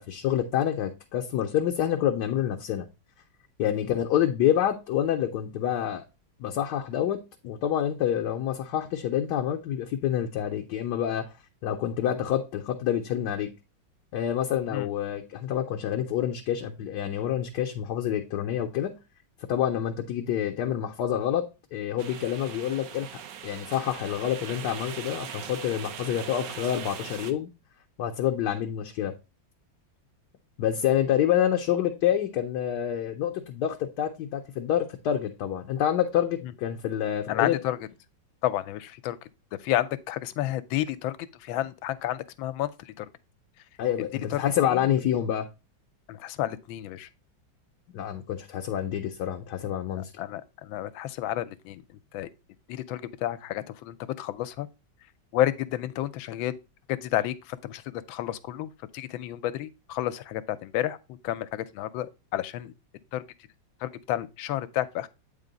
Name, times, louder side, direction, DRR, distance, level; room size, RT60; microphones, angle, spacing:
voice 1, 0.0-2.9 3.6-6.0 6.4-11.2 11.6-13.5 14.1-18.9 19.5-21.4 21.7-27.5 28.0-29.1 30.6-37.6 43.8-45.5 47.9-50.1, left 10 dB, 70° left, 1.1 m, -27 dB
sound 1, 22.0-27.3, right 8 dB, 70° right, 1.3 m, -40 dB
voice 2, 37.3-37.8 38.4-39.2 39.6-43.1 44.3-44.9 46.1-47.1 50.2-51.8 52.1-52.3 52.7-54.7 55.3-56.6 56.9-61.0 61.2-62.7 63.1-63.2 63.8-65.1, left 13 dB, 85° left, 1.3 m, -31 dB
8.3 x 3.7 x 3.9 m
omnidirectional pair, 2.1 m